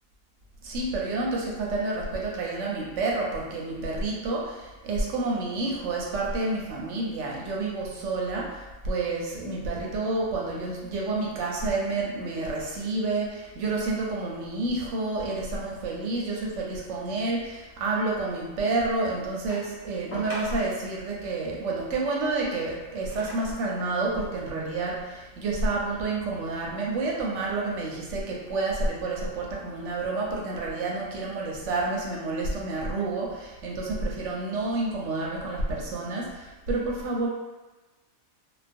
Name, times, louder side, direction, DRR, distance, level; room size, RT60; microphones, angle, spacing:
voice 1, 0.6-37.3, right 3 dB, 65° right, -2 dB, 0.8 m, -29 dB
sound 1, 19.5-20.9 22.4-23.7 24.5-24.6, equal, 60° left, 0.9 m, -41 dB
2.3 x 2.2 x 2.5 m, 1.2 s
omnidirectional pair, 1.5 m